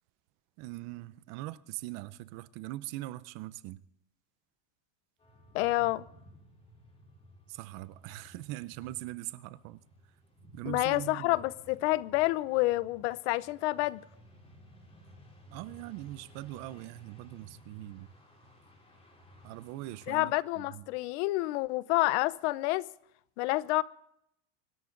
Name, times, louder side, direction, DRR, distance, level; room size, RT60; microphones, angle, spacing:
voice 1, 0.6-3.8 7.5-9.8 10.5-11.4 15.5-18.1 19.4-20.9, right 17 dB, 45° right, 0.6 m, -42 dB
sound 1, 5.2-20.4, equal, 15° left, 5.1 m, -56 dB
voice 2, 5.5-6.1 10.7-14.0 20.1-22.9 23.4-23.8, left 19 dB, 65° left, 0.7 m, -28 dB
24.5 x 13.5 x 3.9 m
cardioid pair, 170°, 37 cm